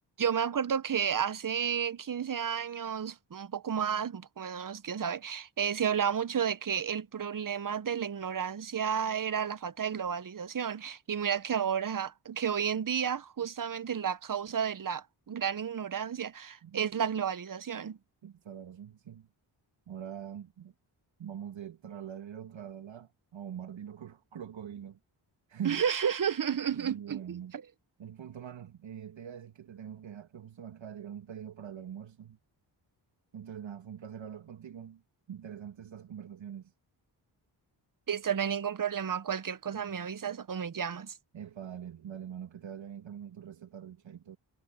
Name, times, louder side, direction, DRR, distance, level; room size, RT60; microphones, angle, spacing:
voice 1, 0.2-18.0 25.6-27.2 38.1-41.1, right 8 dB, 45° right, 1.0 m, -32 dB
voice 2, 16.6-16.9 18.2-19.3 19.9-20.7 21.2-25.0 25.5-25.8 26.7-27.6 28.0-32.4 33.3-35.0 35.3-36.7 39.7-40.0 41.3-44.4, right 9 dB, 70° right, 2.6 m, -43 dB
cardioid pair, 50°, 47 cm